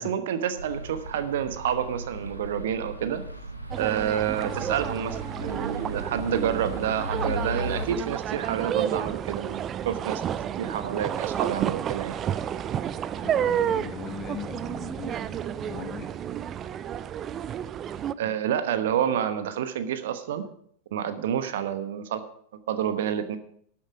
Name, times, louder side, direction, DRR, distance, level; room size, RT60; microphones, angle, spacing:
voice 1, 0.0-3.2 3.8-10.2 10.6-12.2 18.2-20.5 20.9-22.3 22.7-23.4, right 9 dB, 55° right, 10 dB, 1.1 m, -28 dB
sound 1, 0.6-7.9, equal, 90° right, 1.6 m, -37 dB
sound 2, 3.7-18.1, right 9 dB, 30° right, 0.5 m, -31 dB
voice 2, 13.2-16.1, left 6 dB, 25° left, 8 dB, 1.3 m, -39 dB
13.0 x 8.7 x 4.9 m, 0.64 s
figure-of-eight pair, 90°, 0 cm